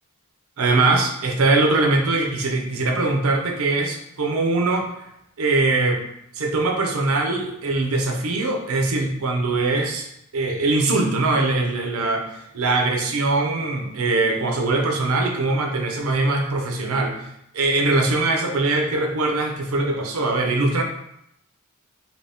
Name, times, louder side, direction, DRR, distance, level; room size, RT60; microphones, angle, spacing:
voice 1, 0.6-4.9 5.4-6.0 6.3-10.1 10.3-17.1 17.5-20.8, right 2 dB, 85° right, 3 dB, 0.6 m, -22 dB
2.9 x 2.7 x 3.4 m, 0.78 s
head